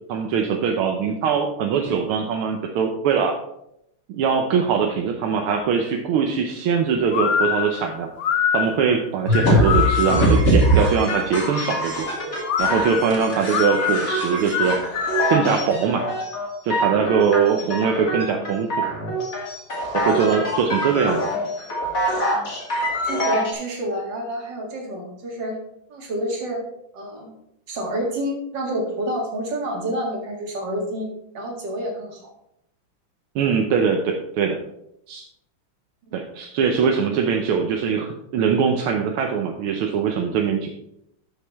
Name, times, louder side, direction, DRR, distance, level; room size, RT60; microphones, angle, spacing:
voice 1, 0.1-3.4 4.1-8.1 8.5-12.1 12.6-14.8 15.3-16.1 16.6-18.8 19.9-21.3 22.1-22.2 33.4-34.6 35.1-35.2 36.1-40.8, right 6 dB, 80° right, 3 dB, 1.7 m, -22 dB
sound 1, 7.1-10.4 12.4-15.5, left 8 dB, 70° left, 0.8 m, -24 dB
sound 2, 9.3-23.5, equal, 40° left, 2.9 m, -23 dB
voice 2, 23.0-25.6 25.9-26.6 26.9-27.3 27.7-32.2, equal, 55° right, 0 dB, 2.6 m, -28 dB
12.5 x 6.5 x 3.4 m, 0.79 s
omnidirectional pair, 2.3 m